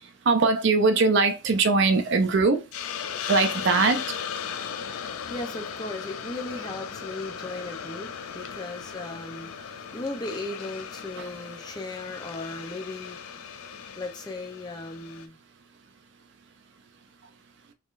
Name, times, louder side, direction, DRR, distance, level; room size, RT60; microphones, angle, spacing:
voice 1, 0.3-2.6 3.3-4.0, right 4 dB, 55° right, 0.5 m, -21 dB
Hiss, 2.7-15.3, left 7 dB, 80° left, 0.4 m, -37 dB
voice 2, 5.0-13.2 14.0-15.4, left 2 dB, 20° left, 0.6 m, -37 dB
3.7 x 3.1 x 2.5 m
head